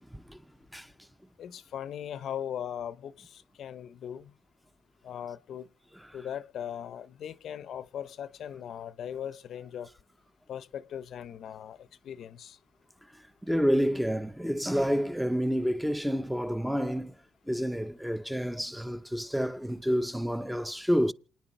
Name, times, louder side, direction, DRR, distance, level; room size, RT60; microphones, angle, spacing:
voice 1, 0.1-0.4 0.7-0.9 6.0-6.1 13.4-17.2 17.5-21.1, equal, ahead, 0.7 m, -29 dB
voice 2, 1.4-4.3 5.0-5.7 6.1-9.9 10.5-12.6, left 9 dB, 70° left, 0.7 m, -39 dB
28.5 x 9.8 x 4.4 m
cardioid pair, 90°, 0 cm